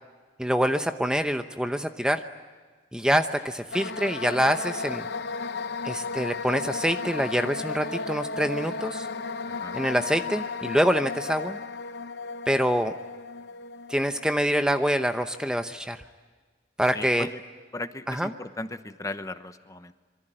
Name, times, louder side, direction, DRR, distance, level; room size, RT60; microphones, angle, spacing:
voice 1, 0.4-2.2 2.9-5.0 5.8-9.1 9.7-11.6 12.5-12.9 13.9-16.0 16.8-17.3 18.1-18.3, equal, 5° right, 7 dB, 0.8 m, -25 dB
sound 1, 3.7-15.6, left 4 dB, 65° left, 0.8 m, -35 dB
voice 2, 9.5-9.8 16.9-17.4 17.7-19.9, left 2 dB, 20° left, 10 dB, 1.0 m, -37 dB
26.0 x 23.5 x 8.9 m, 1.4 s
head